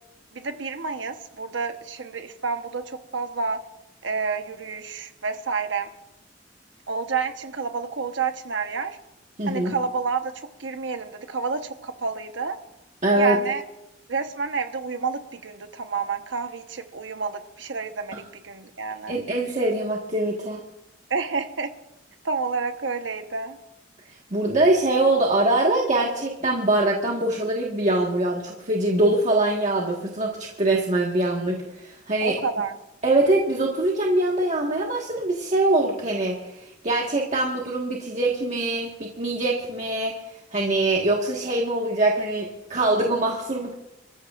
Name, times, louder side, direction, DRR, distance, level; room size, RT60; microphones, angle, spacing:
voice 1, 0.3-3.6 4.0-5.9 6.9-9.0 9.5-12.6 13.1-13.6 14.1-19.2 21.1-21.7 22.2-23.6 32.2-32.7, right 5 dB, 70° right, 7 dB, 1.1 m, -29 dB
voice 2, 9.4-9.8 13.0-13.4 19.1-20.6 24.3-32.3 33.0-43.7, right 2 dB, 40° right, -1 dB, 1.6 m, -23 dB
27.5 x 14.5 x 2.5 m, 0.92 s
head